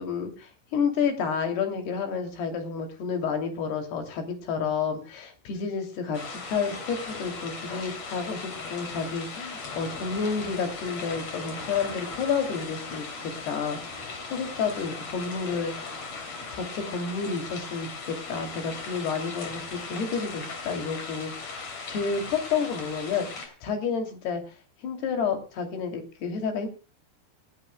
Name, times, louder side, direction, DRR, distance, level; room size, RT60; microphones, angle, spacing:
voice 1, 0.0-6.2 6.5-16.0 16.5-24.4 24.8-26.7, left 5 dB, 80° left, 6 dB, 4.8 m, -30 dB
sound 1, 6.1-23.5, left 4 dB, 45° left, 3.7 m, -38 dB
28.0 x 10.5 x 2.2 m, 0.33 s
omnidirectional pair, 4.6 m